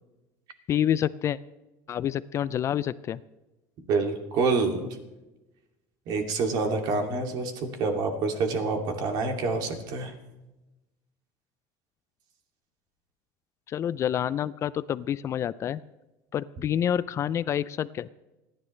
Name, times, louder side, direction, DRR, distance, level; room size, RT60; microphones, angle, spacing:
voice 1, 0.7-1.4 1.9-3.2 4.8-4.9 13.7-15.8 16.3-18.1, left 10 dB, 35° left, 17 dB, 0.4 m, -28 dB
voice 2, 3.9-5.0 6.1-10.1, right 4 dB, 55° right, 3 dB, 2.6 m, -27 dB
30.0 x 11.0 x 3.3 m, 1.0 s
cardioid pair, 140°, 8 cm